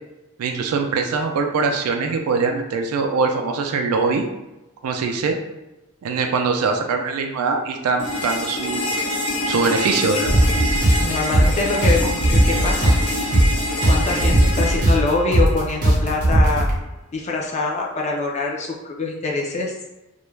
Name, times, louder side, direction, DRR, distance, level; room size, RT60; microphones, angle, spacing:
voice 1, 0.4-4.2 4.8-5.4 6.0-9.0 9.5-10.3, right 4 dB, 85° right, 4 dB, 0.3 m, -22 dB
sound 1, 8.0-16.0, left 1 dB, 75° left, 1.0 m, -26 dB
sound 2, 10.2-16.8, right 1 dB, 40° right, 0.6 m, -19 dB
voice 2, 11.0-13.0 13.9-16.7 17.1-19.7, left 3 dB, 30° left, -1 dB, 0.3 m, -24 dB
2.2 x 2.1 x 3.1 m, 1.0 s
head